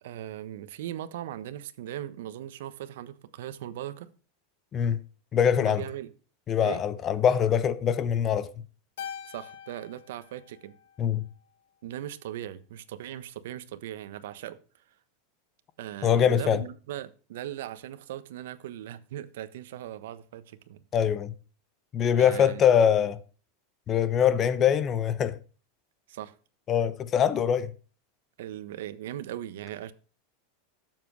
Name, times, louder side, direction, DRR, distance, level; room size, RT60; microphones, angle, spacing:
voice 1, 0.0-4.1 5.6-6.1 6.6-6.8 9.2-10.7 11.8-14.6 15.8-20.8 22.2-22.6 26.1-26.3 28.4-29.9, right 12 dB, 70° right, 1.2 m, -39 dB
voice 2, 5.3-5.8 6.5-8.5 11.0-11.2 16.0-16.6 20.9-21.3 21.9-23.2 23.9-25.4 26.7-27.7, left 8 dB, 20° left, 0.8 m, -23 dB
Keyboard (musical), 9.0-11.5, left 8 dB, 85° left, 1.6 m, -44 dB
12.5 x 7.7 x 6.3 m
supercardioid pair, 165°, 0 cm